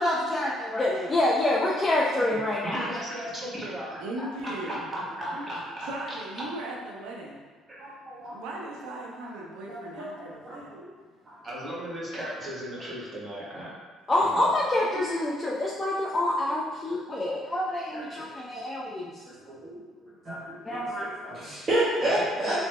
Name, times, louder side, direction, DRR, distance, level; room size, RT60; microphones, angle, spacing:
voice 1, 0.0-2.9 14.1-19.1 20.7-21.1, left 1 dB, 25° left, -5 dB, 0.6 m, -27 dB
voice 2, 2.6-5.9 7.7-7.8 11.4-13.7 14.2-14.5 22.1-22.3, right 1 dB, 20° right, -7 dB, 1.4 m, -36 dB
voice 3, 4.0-4.8 5.9-7.4 8.3-10.7, right 1 dB, 80° right, -2 dB, 0.7 m, -38 dB
voice 4, 7.8-8.3 9.7-10.1 10.4-10.8 17.9-18.3 19.5-19.8 20.2-22.6, right 1 dB, 40° right, -10 dB, 1.0 m, -30 dB
3.3 x 2.9 x 3.2 m, 1.4 s
supercardioid pair, 80°, 0 cm